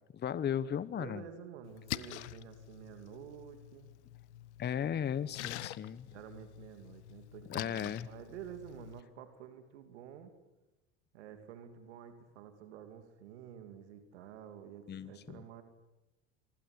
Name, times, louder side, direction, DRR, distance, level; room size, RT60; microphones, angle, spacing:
voice 1, 0.1-1.2 4.6-6.1 7.5-8.1 14.9-15.4, left 9 dB, 30° left, 16 dB, 1.1 m, -36 dB
voice 2, 1.0-3.9 6.1-10.3 11.1-15.6, right 9 dB, 85° right, 8 dB, 2.8 m, -50 dB
Splash splatter, 1.6-9.0, left 15 dB, 85° left, 1.0 m, -46 dB
25.5 x 20.5 x 9.7 m, 1.0 s
hypercardioid pair, 90°, 33 cm